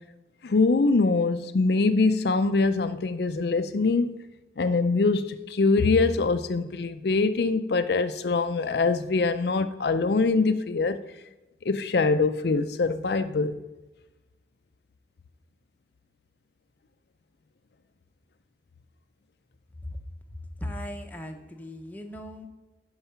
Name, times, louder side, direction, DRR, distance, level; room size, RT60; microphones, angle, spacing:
voice 1, 0.4-4.2 4.6-11.0 11.6-13.6, left 3 dB, 65° left, 0.4 m, -23 dB
voice 2, 20.3-22.5, left 1 dB, 10° left, 0.8 m, -38 dB
11.5 x 4.8 x 5.6 m
head